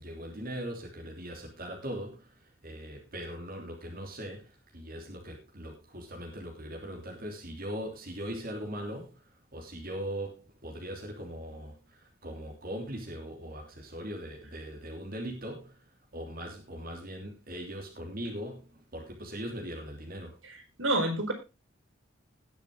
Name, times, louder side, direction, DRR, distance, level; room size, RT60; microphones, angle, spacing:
voice 1, 0.0-9.2 9.5-15.8 16.1-20.3, equal, 50° right, 0 dB, 3.3 m, -40 dB
voice 2, 20.4-21.3, right 1 dB, 85° right, 3 dB, 4.7 m, -29 dB
20.0 x 6.9 x 3.8 m, 0.28 s
head